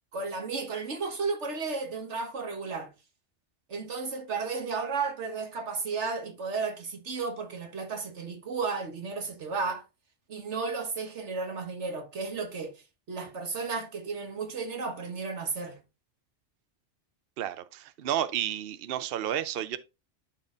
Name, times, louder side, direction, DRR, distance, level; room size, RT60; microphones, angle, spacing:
voice 1, 0.1-2.9 3.7-9.8 10.3-15.8, right 4 dB, 75° right, 1.7 m, -33 dB
voice 2, 17.4-19.8, right 11 dB, 60° right, 0.8 m, -31 dB
12.0 x 4.1 x 2.5 m
omnidirectional pair, 1.2 m